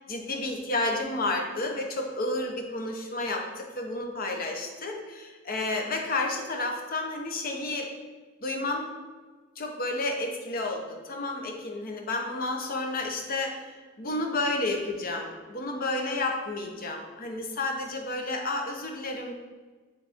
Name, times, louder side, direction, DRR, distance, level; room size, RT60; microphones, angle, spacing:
voice 1, 0.1-7.9 8.4-8.9 9.6-19.3, left 2 dB, 45° left, 2 dB, 0.8 m, -31 dB
9.8 x 3.3 x 3.5 m, 1.4 s
head